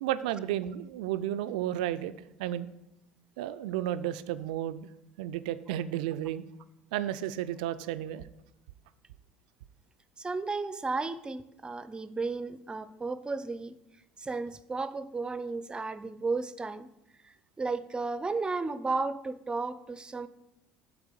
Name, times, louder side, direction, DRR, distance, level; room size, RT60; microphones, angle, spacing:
voice 1, 0.0-2.1 2.4-2.7 3.4-4.9 5.2-6.5 6.9-8.3, right 12 dB, 70° right, 13 dB, 0.3 m, -32 dB
voice 2, 10.2-13.8 14.2-16.9 17.2-20.3, right 3 dB, 20° right, 14 dB, 0.5 m, -34 dB
8.0 x 4.3 x 6.7 m, 0.84 s
figure-of-eight pair, 60°, 5 cm